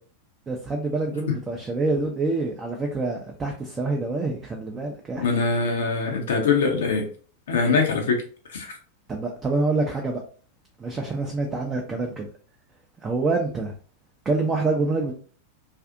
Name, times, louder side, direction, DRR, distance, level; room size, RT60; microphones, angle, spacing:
voice 1, 0.5-5.3 9.1-10.2 10.8-12.3 13.0-13.7 14.3-15.1, right 3 dB, 20° right, 1 dB, 0.4 m, -26 dB
voice 2, 5.2-7.0 7.5-8.2 8.5-8.7, left 4 dB, 60° left, 2 dB, 0.5 m, -22 dB
2.5 x 2.4 x 2.4 m, 0.42 s
figure-of-eight pair, 90°, 0 cm